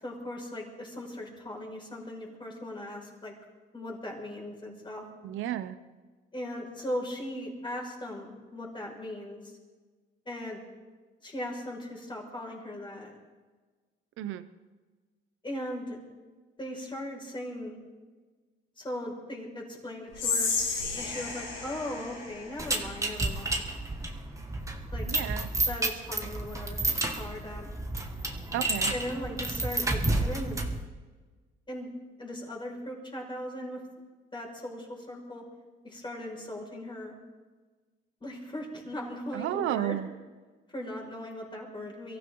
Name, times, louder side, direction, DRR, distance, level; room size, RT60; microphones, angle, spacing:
voice 1, 0.0-3.4 3.7-5.0 6.3-9.4 10.3-10.6 11.2-13.2 15.4-16.0 16.6-17.8 18.8-20.5 21.0-23.7 24.9-25.1 25.7-26.8 27.2-27.7 28.9-30.6 31.7-31.9 32.2-33.8 34.3-35.4 35.8-37.1 38.2-40.0 40.7-42.2, left 1 dB, 25° left, -1 dB, 5.8 m, -38 dB
voice 2, 5.2-5.8 14.2-14.4 25.1-25.5 28.5-28.9 39.3-40.1, right 12 dB, 90° right, 12 dB, 0.8 m, -32 dB
Whispering, 20.1-23.3, left 4 dB, 85° left, 6.3 m, -33 dB
sound 1, 22.6-30.8, right 2 dB, 15° right, 1.9 m, -31 dB
23.0 x 15.0 x 3.9 m, 1.3 s
cardioid pair, 90°, 20 cm